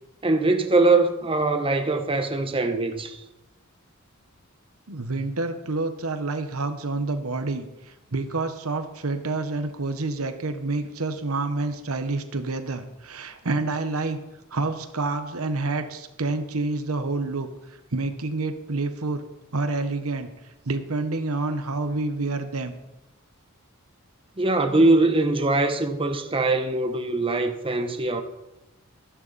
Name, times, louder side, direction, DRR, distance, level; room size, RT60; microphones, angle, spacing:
voice 1, 0.2-3.2 24.4-28.2, right 2 dB, 25° right, 1.0 m, -22 dB
voice 2, 4.9-14.2 14.5-17.5 17.9-19.2 19.5-20.3 20.6-22.7, right 3 dB, 85° right, 1.2 m, -28 dB
14.0 x 12.0 x 4.2 m
head